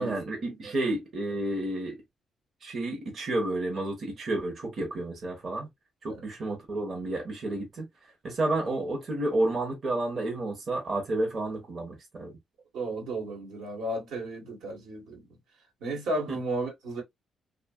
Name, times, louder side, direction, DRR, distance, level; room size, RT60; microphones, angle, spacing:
voice 1, 0.0-2.0 2.6-5.7 6.0-7.9 8.2-12.3 16.3-16.4, right 2 dB, 50° right, 0.9 m, -31 dB
voice 2, 12.7-15.3 15.8-17.0, right 2 dB, 80° right, 1.4 m, -33 dB
2.8 x 2.4 x 2.3 m
cardioid pair, 90°, 0 cm